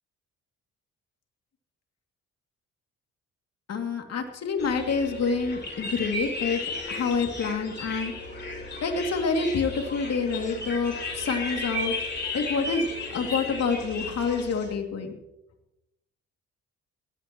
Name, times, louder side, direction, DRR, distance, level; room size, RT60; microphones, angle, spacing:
voice 1, 3.7-6.6 6.9-8.1 8.8-11.9 12.3-15.1, left 5 dB, 55° left, 4 dB, 2.6 m, -27 dB
sound 1, 4.6-14.7, left 2 dB, 35° left, 4.2 m, -35 dB
19.0 x 15.0 x 3.1 m, 0.92 s
cardioid pair, 90°, 30 cm